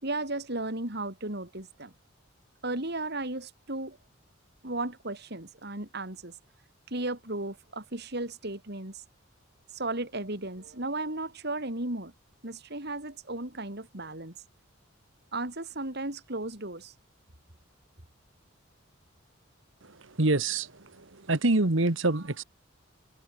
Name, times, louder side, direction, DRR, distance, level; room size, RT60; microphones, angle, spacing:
voice 1, 0.0-1.9 2.6-4.0 4.6-6.3 6.9-9.0 9.7-12.1 12.4-14.4 15.3-16.9, right 2 dB, 55° right, 4.9 m, -35 dB
voice 2, 20.2-20.7 21.0-22.4, right 2 dB, 70° right, 1.7 m, -25 dB
head